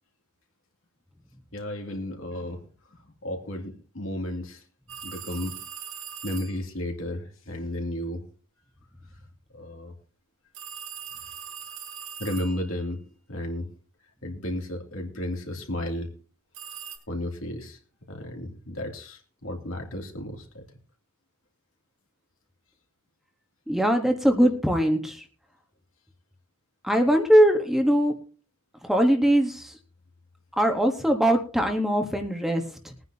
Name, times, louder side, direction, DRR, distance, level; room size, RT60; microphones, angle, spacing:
voice 1, 1.5-2.6 2.9-4.6 5.0-5.6 6.2-8.3 9.5-9.9 12.2-13.0 13.3-13.7 14.2-16.1 17.1-17.8 18.1-20.6, left 1 dB, 70° left, 2 dB, 2.7 m, -33 dB
sound 1, 4.9-6.6 10.5-12.8 16.5-17.0, right 8 dB, 75° right, 4.0 m, -40 dB
voice 2, 23.7-25.2 26.8-28.2 28.8-29.8 30.6-32.9, equal, ahead, 4 dB, 1.2 m, -21 dB
21.0 x 9.6 x 2.8 m, 0.38 s
head